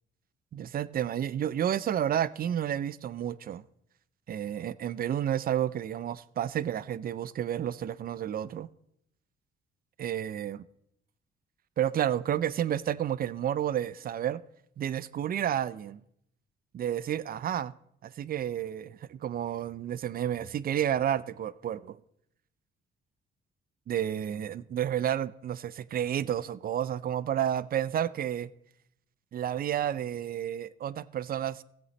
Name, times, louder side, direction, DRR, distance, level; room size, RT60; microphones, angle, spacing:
voice 1, 0.5-3.6 4.3-8.7 10.0-10.6 11.8-14.4 14.8-16.0 16.7-17.7 18.0-22.0 23.9-28.5 29.3-31.6, right 10 dB, 50° right, 0.5 m, -31 dB
15.5 x 8.0 x 3.2 m
cardioid pair, 90°, 20 cm